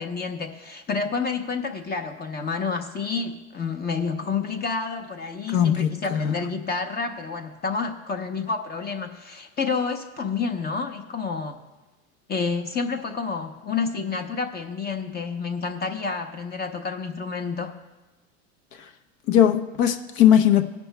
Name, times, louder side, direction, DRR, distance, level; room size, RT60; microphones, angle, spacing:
voice 1, 0.0-11.6 12.3-17.8, left 5 dB, 25° left, 5 dB, 0.8 m, -29 dB
voice 2, 5.5-6.3 19.3-20.6, left 10 dB, 50° left, 6 dB, 0.9 m, -19 dB
18.5 x 10.5 x 2.2 m, 1.1 s
supercardioid pair, 115°, 40 cm